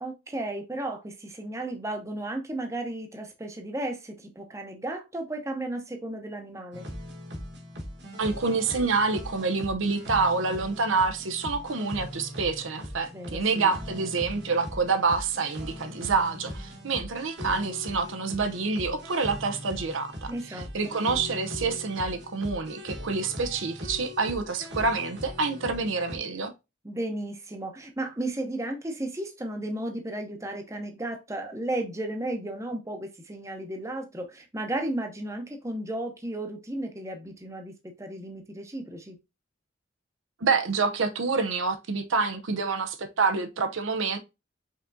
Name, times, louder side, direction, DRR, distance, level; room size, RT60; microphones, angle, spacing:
voice 1, 0.0-6.9 13.1-13.7 20.3-20.9 26.8-39.2, right 1 dB, 15° right, 0.7 m, -34 dB
sound 1, 6.7-26.2, left 1 dB, 60° right, 1.4 m, -40 dB
voice 2, 8.2-20.3 20.7-26.5 40.4-44.2, right 4 dB, 90° right, 0.7 m, -27 dB
5.3 x 3.6 x 2.6 m
head